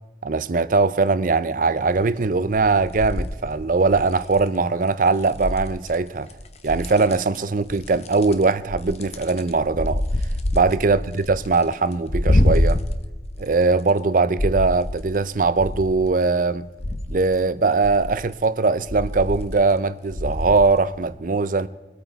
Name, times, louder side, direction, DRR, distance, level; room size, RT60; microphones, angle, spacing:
voice 1, 0.2-6.3 6.6-10.0 10.5-12.8 13.4-16.7 17.1-21.7, right 3 dB, 45° right, 0.5 m, -21 dB
sound 1, 1.9-2.2 2.5-4.5 5.2-5.9 6.3-7.4 7.7-14.0 14.4-16.1 16.5-17.2 17.8-18.4 18.8-19.7 20.1-20.7 21.1-21.2, left 1 dB, 35° left, 0.8 m, -26 dB
23.0 x 8.8 x 4.0 m
head